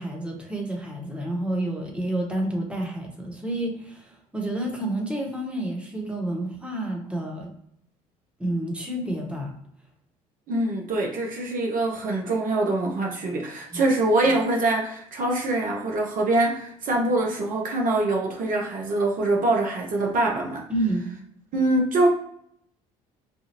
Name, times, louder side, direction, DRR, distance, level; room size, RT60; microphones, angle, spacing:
voice 1, 0.0-7.5 8.4-9.5 13.7-13.8 20.7-21.1, right 1 dB, 5° right, 0 dB, 1.1 m, -29 dB
voice 2, 10.5-20.6 21.5-22.1, right 2 dB, 50° right, 0 dB, 0.8 m, -24 dB
3.4 x 2.2 x 2.8 m, 0.72 s
hypercardioid pair, 55°, 18 cm